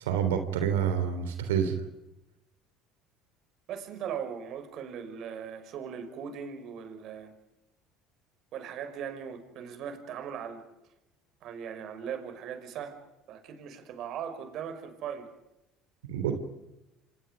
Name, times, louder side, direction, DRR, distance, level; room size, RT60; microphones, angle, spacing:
voice 1, 0.0-1.8 16.1-16.3, right 8 dB, 85° right, 3.3 m, -27 dB
voice 2, 3.7-7.3 8.5-10.6 11.4-13.0 13.3-15.3, right 8 dB, 60° right, 5.5 m, -39 dB
29.5 x 26.5 x 5.2 m
hypercardioid pair, 70°, 0 cm